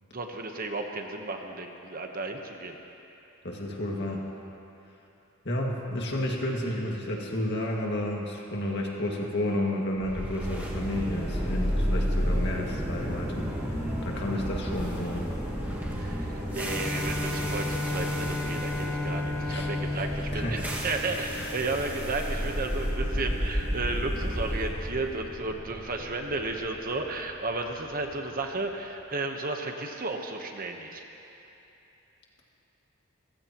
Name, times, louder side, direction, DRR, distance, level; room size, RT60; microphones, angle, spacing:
voice 1, 0.1-2.8 16.0-31.0, right 3 dB, 45° right, 3 dB, 1.1 m, -33 dB
voice 2, 3.4-4.2 5.4-13.5 14.0-15.2 19.5-19.7 20.3-20.7 21.3-21.5, left 1 dB, 55° left, -1 dB, 2.1 m, -31 dB
sound 1, 10.0-28.1, equal, 10° right, 1.9 m, -32 dB
sound 2, 10.5-24.7, equal, 25° right, 2.4 m, -42 dB
Bowed string instrument, 16.6-21.8, left 2 dB, 10° left, 1.3 m, -33 dB
29.5 x 15.5 x 3.1 m, 3.0 s
head